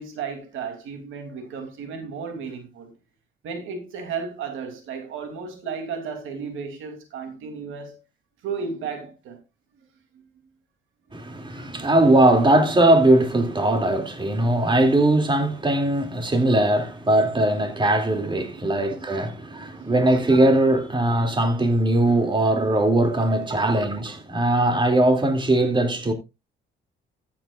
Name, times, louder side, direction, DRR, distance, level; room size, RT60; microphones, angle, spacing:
voice 1, 0.0-2.9 3.4-8.0 8.4-9.4 10.1-10.2 11.6-11.8 14.4-14.5 18.7-18.8 19.6-19.9 23.2-23.6, right 5 dB, 85° right, 2.8 m, -34 dB
voice 2, 11.1-26.1, right 1 dB, 25° right, 2.6 m, -20 dB
15.0 x 8.8 x 2.4 m
cardioid pair, 90°, 20 cm